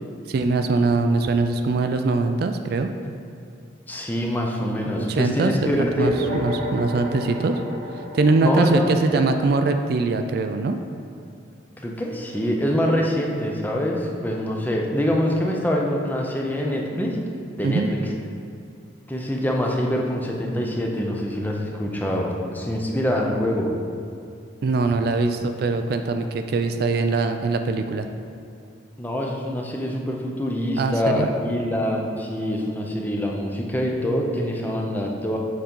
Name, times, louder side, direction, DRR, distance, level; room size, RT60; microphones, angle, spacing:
voice 1, 0.3-2.9 4.8-5.5 5.8-7.6 8.1-10.8 17.6-17.9 24.6-28.1 30.8-31.3, right 3 dB, 55° right, 7 dB, 0.3 m, -22 dB
voice 2, 3.9-6.1 8.4-9.2 11.8-17.2 17.6-18.0 19.1-23.7 29.0-35.4, equal, 10° left, -1 dB, 0.6 m, -25 dB
sound 1, 6.0-10.9, left 1 dB, 35° right, 0.7 m, -33 dB
7.0 x 3.8 x 5.3 m, 2.4 s
head